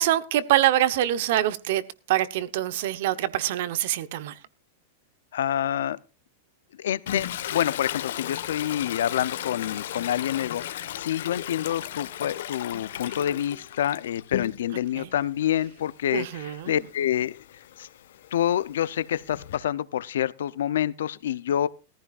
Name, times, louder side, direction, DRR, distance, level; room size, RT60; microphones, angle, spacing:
voice 1, 0.0-4.4 14.9-15.1 16.1-16.7, right 13 dB, 55° right, 1.0 m, -25 dB
voice 2, 5.3-6.0 6.8-17.4 17.8-17.9 18.3-21.7, left 11 dB, 85° left, 0.6 m, -27 dB
Toilet flush, 7.1-14.9 15.3-19.6, left 11 dB, 70° left, 1.3 m, -36 dB
18.0 x 14.5 x 2.4 m
supercardioid pair, 170°, 0 cm